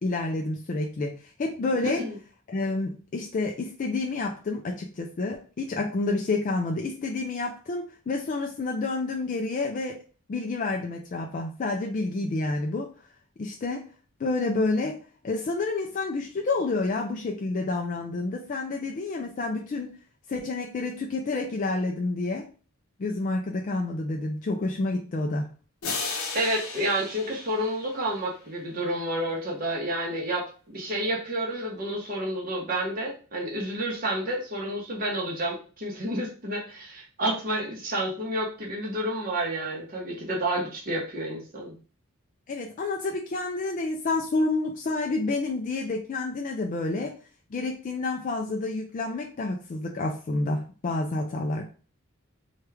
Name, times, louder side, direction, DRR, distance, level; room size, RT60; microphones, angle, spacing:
voice 1, 0.0-2.0 2.5-10.0 10.3-12.9 13.4-13.8 14.2-19.9 20.3-22.5 23.0-25.5 42.5-47.1 47.5-51.7, left 3 dB, 40° left, 1 dB, 0.3 m, -29 dB
sound 1, 25.8-28.5, left 4 dB, 75° left, 0.7 m, -35 dB
voice 2, 26.3-41.8, right 1 dB, 40° right, -1 dB, 1.0 m, -30 dB
3.0 x 2.3 x 3.3 m, 0.38 s
head